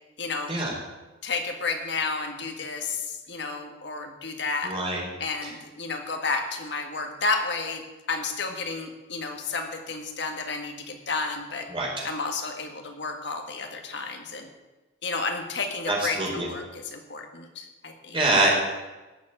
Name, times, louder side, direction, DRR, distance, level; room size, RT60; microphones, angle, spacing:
voice 1, 0.2-0.6 1.2-4.8 5.2-11.7 12.0-14.5 15.0-18.2, left 4 dB, 60° left, 4 dB, 1.8 m, -31 dB
voice 2, 4.6-5.0 5.4-5.5 11.7-11.9 15.9-16.5 18.1-18.5, right 2 dB, 25° right, -2 dB, 4.7 m, -24 dB
17.5 x 7.4 x 9.1 m, 1.2 s
head